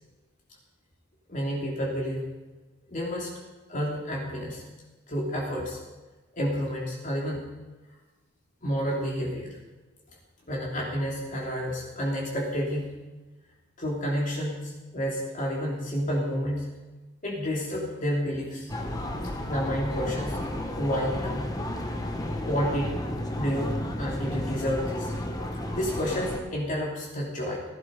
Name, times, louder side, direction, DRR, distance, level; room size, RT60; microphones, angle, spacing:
voice 1, 1.3-2.3 2.9-3.3 3.7-4.6 5.1-5.8 6.4-7.5 8.6-9.6 10.5-12.9 13.8-16.7 17.2-18.7 19.5-20.4 20.8-21.5 22.4-22.9 23.3-25.1 25.5-27.6, equal, 40° left, -3 dB, 3.3 m, -30 dB
sound 1, 18.7-26.4, left 1 dB, 20° left, 1.5 m, -32 dB
18.0 x 12.5 x 5.4 m, 1.2 s
head